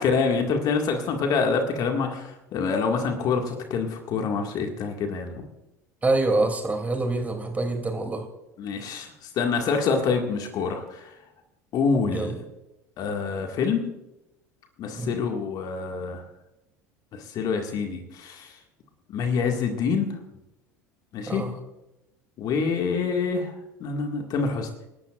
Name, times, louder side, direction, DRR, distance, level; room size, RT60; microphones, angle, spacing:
voice 1, 0.0-5.4 8.6-11.1 11.7-12.4 13.0-13.9 14.8-16.2 17.1-18.6 19.1-20.1 21.1-21.5 22.4-24.7, left 5 dB, 45° left, 3 dB, 2.0 m, -26 dB
voice 2, 6.0-8.2 12.1-12.3 15.0-15.2 21.3-21.5, right 2 dB, 15° right, 5 dB, 2.9 m, -25 dB
30.0 x 12.0 x 2.5 m, 0.92 s
figure-of-eight pair, 70°, 9 cm